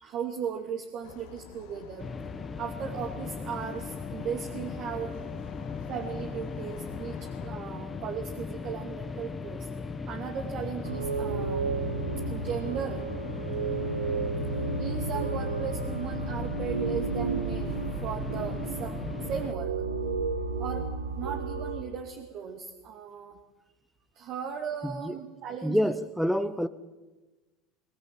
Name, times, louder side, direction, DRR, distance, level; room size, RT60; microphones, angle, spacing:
voice 1, 0.0-2.1 2.6-5.2 5.9-9.7 10.1-13.1 14.8-19.7 20.6-20.9 21.2-23.4 23.7-23.8 24.1-25.9, right 7 dB, 50° right, 2.4 m, -37 dB
sound 1, 1.0-7.5, left 8 dB, 60° left, 1.9 m, -47 dB
sound 2, 2.0-19.5, left 5 dB, 20° left, 1.5 m, -37 dB
sound 3, 10.8-21.8, right 4 dB, 85° right, 1.4 m, -32 dB
voice 2, 24.8-25.1 25.6-26.7, equal, ahead, 1.0 m, -27 dB
23.5 x 21.0 x 7.5 m
figure-of-eight pair, 70°, 0 cm